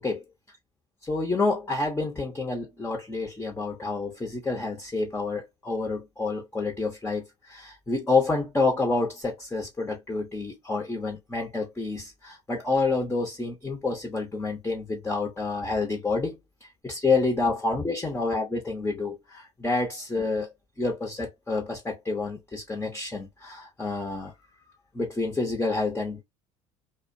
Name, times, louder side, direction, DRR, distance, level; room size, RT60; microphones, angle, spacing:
voice 1, 1.0-20.5 20.8-24.3 24.9-26.2, left 3 dB, 15° left, 0.9 m, -28 dB
2.4 x 2.2 x 2.6 m
hypercardioid pair, 65°, 15 cm